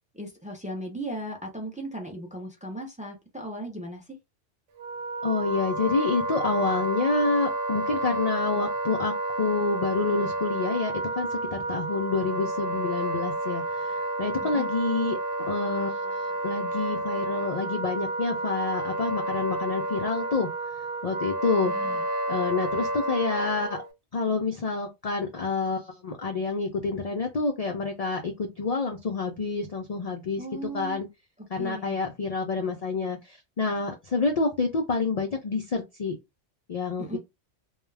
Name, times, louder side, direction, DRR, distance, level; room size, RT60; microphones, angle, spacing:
voice 1, 0.1-4.0 14.5-14.7 21.7-22.0 30.4-31.0 31.6-32.0 37.0-37.2, right 1 dB, 15° right, 0.3 m, -37 dB
Wind instrument woodwind instrument, 4.8-23.9, right 2 dB, 80° right, 0.9 m, -30 dB
voice 2, 5.2-20.5 21.0-23.8 24.1-30.4 30.7-31.1 31.5-36.2 36.7-37.2, left 4 dB, 80° left, 0.3 m, -28 dB
2.3 x 2.2 x 3.2 m
omnidirectional pair, 1.2 m